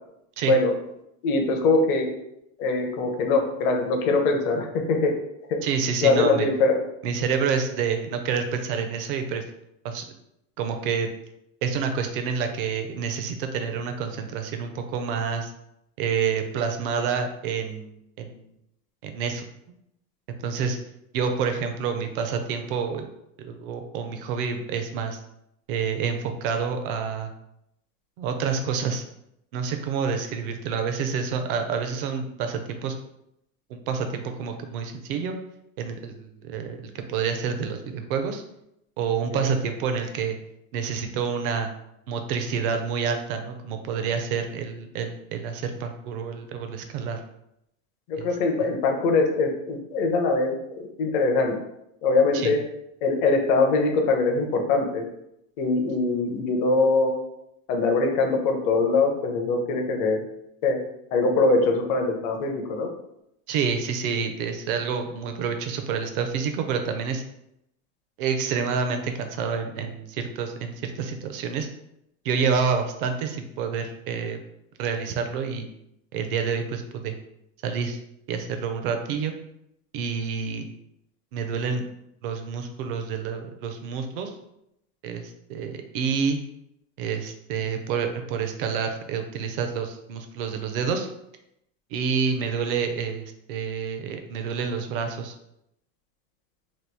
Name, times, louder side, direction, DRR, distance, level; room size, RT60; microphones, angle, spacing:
voice 1, 1.2-2.1 2.6-5.1 5.5-5.6 6.0-6.7 39.3-39.4 48.1-51.5 52.0-52.6 53.0-55.0 55.6-57.1 57.7-60.2 60.6-60.8 61.1-62.9, left 3 dB, 35° left, 2 dB, 0.5 m, -22 dB
voice 2, 5.6-6.5 7.0-9.4 9.8-10.1 10.6-11.1 11.6-15.5 16.0-18.4 19.0-19.5 20.4-20.8 21.1-23.1 23.4-25.2 25.7-27.3 28.2-29.0 29.5-32.9 33.7-35.3 35.8-38.4 39.0-40.4 40.7-41.7 42.1-47.2 48.1-48.7 52.3-52.5 63.5-67.2 68.2-71.7 72.2-74.4 74.8-75.7 76.1-77.1 77.6-78.0 78.3-79.3 79.9-80.7 81.3-81.8 82.2-84.3 85.0-86.4 87.0-91.1 91.9-95.3, right 6 dB, 45° right, 6 dB, 0.5 m, -28 dB
3.0 x 2.3 x 3.3 m, 0.81 s
supercardioid pair, 150°, 40 cm